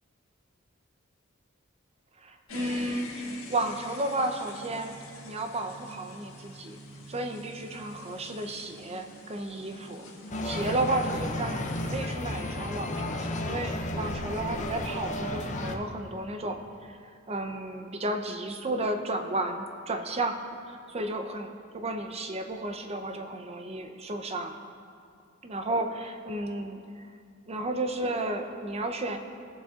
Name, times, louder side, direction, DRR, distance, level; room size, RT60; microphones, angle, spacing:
voice 1, 2.2-4.9 5.2-6.8 7.1-10.1 10.4-16.6 16.9-24.6 25.4-27.0 27.5-29.2, right 2 dB, 30° right, 5 dB, 0.7 m, -33 dB
sound 1, 2.5-10.9, left 1 dB, 90° left, 1.6 m, -46 dB
sound 2, 10.3-15.8, left 1 dB, 35° left, 0.7 m, -33 dB
18.0 x 7.3 x 2.4 m, 2.3 s
head